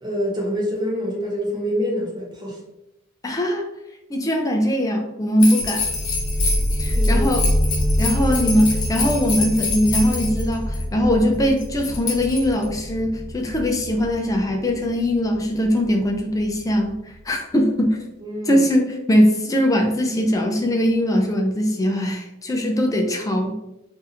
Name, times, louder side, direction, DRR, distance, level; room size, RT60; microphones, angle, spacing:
voice 1, 0.0-2.6 6.9-7.3 18.2-18.6, equal, 20° right, -3 dB, 1.0 m, -26 dB
voice 2, 3.2-3.7 4.1-5.8 6.8-7.4 8.0-17.0 17.3-18.0 18.5-23.6, equal, 15° left, 2 dB, 0.4 m, -21 dB
sound 1, 5.4-10.8 11.6-12.8, left 4 dB, 75° left, 0.9 m, -27 dB
sound 2, 5.6-17.0, equal, 50° right, 1.1 m, -26 dB
2.6 x 2.5 x 4.1 m, 0.89 s
head